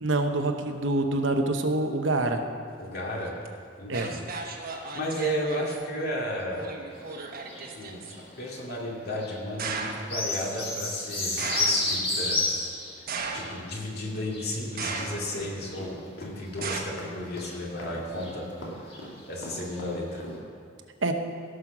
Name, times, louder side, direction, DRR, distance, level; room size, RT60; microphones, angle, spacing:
voice 1, 0.0-2.4 3.9-4.1 21.0-21.1, right 2 dB, 85° right, 5 dB, 1.0 m, -26 dB
voice 2, 2.8-3.3 3.8-4.2 4.6-6.7 7.7-8.0 8.4-12.4 13.3-18.5 18.7-19.0 19.3-20.2, equal, 55° left, -3 dB, 2.5 m, -33 dB
sound 1, 3.5-3.6 3.9-5.8 6.6-8.1 9.6-10.2 11.4-11.9 13.1-13.8 14.8-15.4 16.6-16.8, right 4 dB, 50° right, 1.2 m, -35 dB
sound 2, 6.9-9.4 9.7-13.1 13.4-16.1 16.6-16.8 17.2-17.8 18.1-18.6 18.9-19.3 19.7-19.8 20.3-20.4, left 2 dB, 30° left, 2.0 m, -32 dB
sound 3, 15.0-20.4, left 1 dB, 80° left, 2.5 m, -41 dB
16.0 x 6.5 x 6.0 m, 2.3 s
head